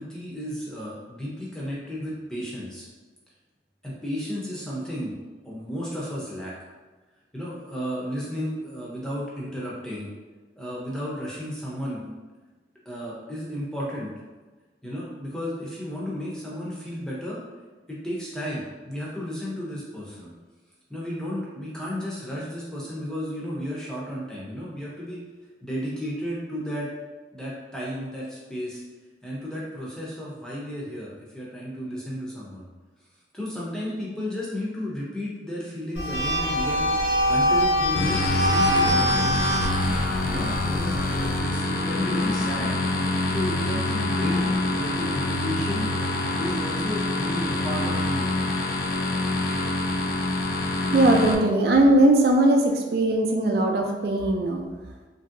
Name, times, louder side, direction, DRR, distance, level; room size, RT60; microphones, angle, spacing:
voice 1, 0.0-2.9 3.8-5.1 5.4-6.6 7.3-10.1 10.6-12.1 12.9-14.1 14.8-17.4 17.9-20.3 20.9-25.2 25.6-26.9 27.3-28.8 29.2-32.7 33.3-39.5 40.2-42.8 43.3-45.9 46.3-48.4, equal, 5° left, -6 dB, 0.6 m, -33 dB
sound 1, 36.0-41.4, equal, 80° left, 0.8 m, -24 dB
sound 2, 37.9-51.3, left 2 dB, 50° left, 0.3 m, -26 dB
voice 2, 50.9-54.6, right 1 dB, 60° right, 1 dB, 0.4 m, -19 dB
2.9 x 2.6 x 2.5 m, 1.3 s
head